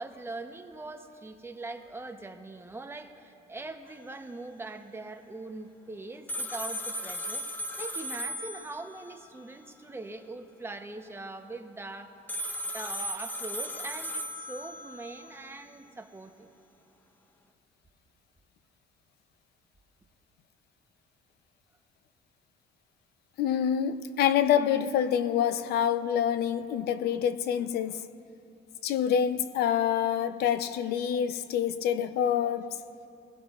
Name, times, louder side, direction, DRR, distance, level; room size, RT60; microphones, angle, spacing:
voice 1, 0.0-7.4 7.8-12.1 12.7-16.5, right 2 dB, 15° right, 0.8 m, -42 dB
sound 1, 6.3-9.1 12.3-15.3, equal, 10° left, 0.9 m, -36 dB
voice 2, 23.4-28.0 28.8-32.8, left 9 dB, 75° left, 0.6 m, -26 dB
23.0 x 16.5 x 2.4 m
cardioid pair, 110°, 17 cm